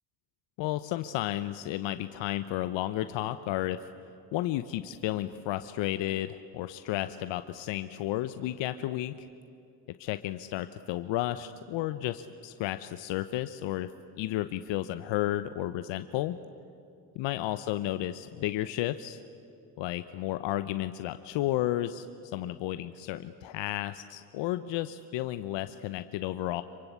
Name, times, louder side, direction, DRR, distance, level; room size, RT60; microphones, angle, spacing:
voice 1, 0.6-3.8 4.3-9.1 10.0-13.9 14.2-16.4 17.1-19.2 19.8-22.1 22.3-26.6, left 14 dB, 70° left, 11 dB, 1.0 m, -32 dB
27.0 x 23.5 x 8.2 m, 2.8 s
hypercardioid pair, 60°, 47 cm